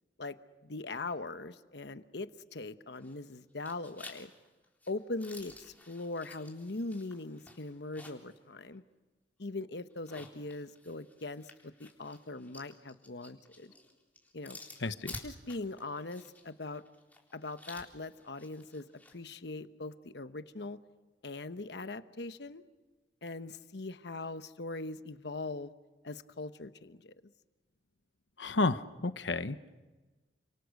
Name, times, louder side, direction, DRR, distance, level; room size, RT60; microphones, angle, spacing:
voice 1, 0.6-4.3 4.9-8.8 9.4-13.7 14.3-14.6 15.2-16.8 17.3-20.8 21.2-22.6 23.2-25.7 26.0-27.1, left 2 dB, 65° left, 11 dB, 1.1 m, -41 dB
sound 1, 2.9-3.3 3.6-8.4 8.7-8.8 9.9-19.2, left 2 dB, 10° left, 3.7 m, -52 dB
voice 2, 14.8-15.2 28.4-29.6, left 3 dB, 85° left, 11 dB, 1.1 m, -31 dB
29.5 x 26.5 x 6.5 m, 1.2 s
head